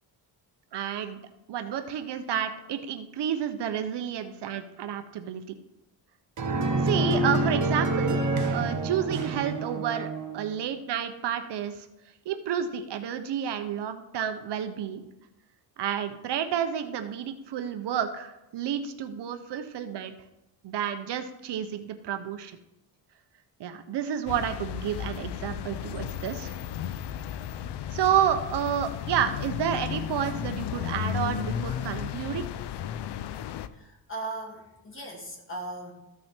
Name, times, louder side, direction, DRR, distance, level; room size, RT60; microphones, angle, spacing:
voice 1, 0.7-1.2 1.5-5.6 6.8-10.1 10.3-11.8 12.3-15.0 15.8-20.1 20.6-22.6 23.6-26.6 27.9-32.4, right 9 dB, 65° right, 8 dB, 0.9 m, -30 dB
sound 1, 6.4-10.5, right 2 dB, 45° right, 1.3 m, -27 dB
sound 2, 24.3-33.7, left 10 dB, 65° left, 0.6 m, -34 dB
voice 2, 33.7-35.9, right 2 dB, 30° left, 0 dB, 2.7 m, -38 dB
14.0 x 6.0 x 4.5 m, 0.90 s
cardioid pair, 130°, 44 cm